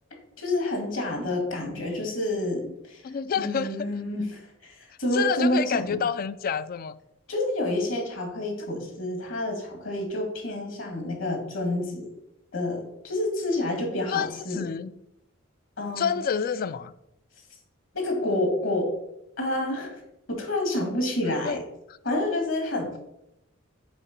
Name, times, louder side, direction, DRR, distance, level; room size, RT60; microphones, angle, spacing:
voice 1, 0.4-3.0 3.4-6.0 7.3-12.1 12.5-14.6 15.8-16.2 17.9-18.9 19.4-20.0 20.3-21.6 22.0-22.9, left 1 dB, 70° left, 2.2 m, -28 dB
voice 2, 3.0-3.9 5.1-7.0 14.1-14.9 16.0-16.9 21.4-21.6 21.9-22.0, left 7 dB, 45° left, 0.3 m, -28 dB
6.9 x 4.6 x 5.2 m
head